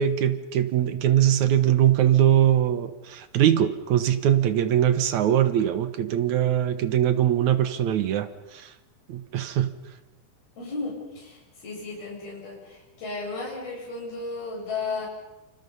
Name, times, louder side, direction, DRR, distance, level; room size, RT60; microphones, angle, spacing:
voice 1, 0.0-8.7 9.1-9.7, right 10 dB, 65° right, 11 dB, 2.1 m, -22 dB
voice 2, 10.6-15.1, left 3 dB, 80° left, -2 dB, 9.3 m, -34 dB
29.0 x 26.5 x 5.5 m, 1.0 s
omnidirectional pair, 4.3 m